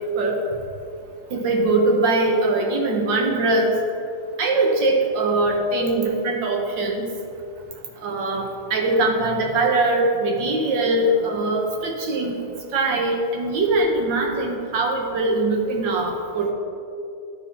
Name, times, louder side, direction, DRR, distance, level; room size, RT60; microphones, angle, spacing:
voice 1, 1.3-3.8 4.4-7.0 8.0-12.4 12.7-16.5, right 2 dB, 65° right, 1 dB, 1.5 m, -21 dB
12.0 x 4.2 x 4.2 m, 2.6 s
omnidirectional pair, 2.3 m